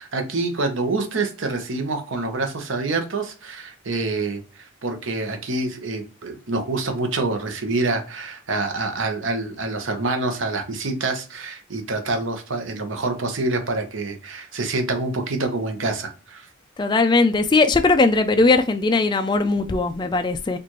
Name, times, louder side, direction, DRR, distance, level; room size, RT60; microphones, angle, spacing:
voice 1, 0.0-16.5, right 3 dB, 65° right, 0.8 m, -26 dB
voice 2, 16.8-20.6, left 3 dB, 20° left, 0.3 m, -19 dB
4.5 x 2.5 x 3.0 m
head